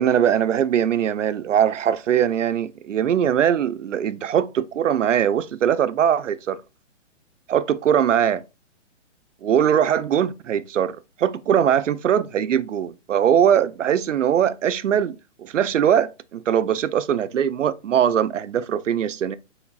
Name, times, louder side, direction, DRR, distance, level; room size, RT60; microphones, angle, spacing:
voice 1, 0.0-6.6 7.5-8.4 9.4-19.4, right 9 dB, 75° right, 0.7 m, -21 dB
7.6 x 6.1 x 2.4 m
hypercardioid pair, 170°, 37 cm